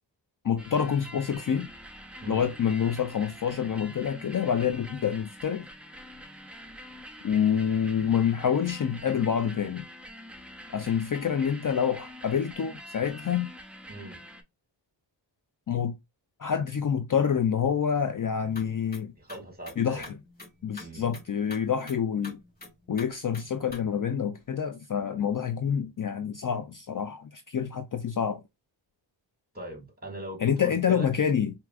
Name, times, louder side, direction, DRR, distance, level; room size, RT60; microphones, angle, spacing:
voice 1, 0.4-1.7 2.3-5.7 7.2-9.8 10.7-13.5 15.7-15.9 16.4-19.1 19.8-20.2 20.6-22.4 22.9-28.4 30.4-31.5, left 8 dB, 45° left, 0.5 m, -27 dB
sound 1, 0.6-14.4, equal, 5° right, 0.7 m, -46 dB
voice 2, 13.9-14.2 19.2-20.1 20.8-21.1 29.5-31.1, right 1 dB, 20° right, 1.6 m, -40 dB
sound 2, 18.3-23.8, left 2 dB, 20° left, 2.2 m, -48 dB
4.6 x 2.9 x 2.4 m
wide cardioid pair, 65°, 47 cm